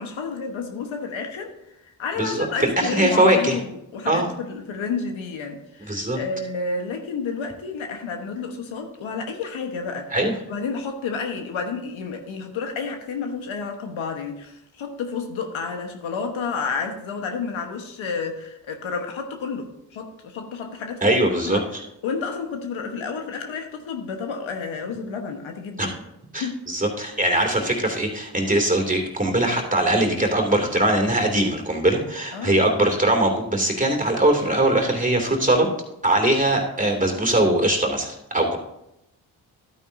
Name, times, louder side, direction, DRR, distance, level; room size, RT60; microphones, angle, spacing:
voice 1, 0.0-1.5 2.0-10.2 10.5-21.2 21.4-21.6 22.0-25.9 26.4-26.6 32.3-32.6, left 5 dB, 80° left, 4 dB, 1.3 m, -30 dB
voice 2, 2.2-3.6 4.1-4.3 5.9-6.2 10.1-10.4 21.0-21.8 25.8-25.9 26.3-35.7 36.0-38.6, right 1 dB, 15° right, 3 dB, 2.6 m, -21 dB
12.0 x 9.1 x 2.7 m, 0.85 s
supercardioid pair, 45°, 46 cm